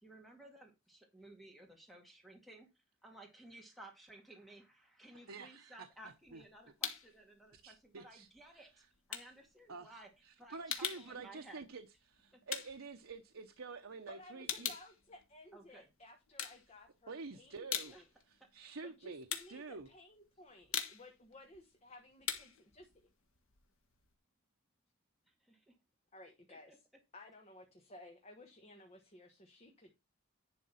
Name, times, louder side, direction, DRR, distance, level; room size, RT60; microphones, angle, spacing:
voice 1, 0.0-2.7 3.0-8.7 9.1-10.1 10.4-11.7 12.3-12.4 15.5-15.8 17.9-18.0 25.4-25.7 26.5-26.8, right 1 dB, ahead, 2.1 m, -56 dB
voice 2, 5.3-6.4 7.5-8.3 8.5-8.9 9.7-14.7 17.1-17.9 18.3-19.9, right 4 dB, 75° right, 0.8 m, -49 dB
sound 1, 5.9-7.2 7.5-13.8 14.1-15.8 16.2-17.1 17.4-24.1, left 8 dB, 75° left, 1.4 m, -43 dB
voice 3, 14.1-18.0 18.8-22.9 26.1-26.9 27.1-29.9, left 2 dB, 30° left, 1.3 m, -57 dB
10.5 x 3.7 x 5.7 m
head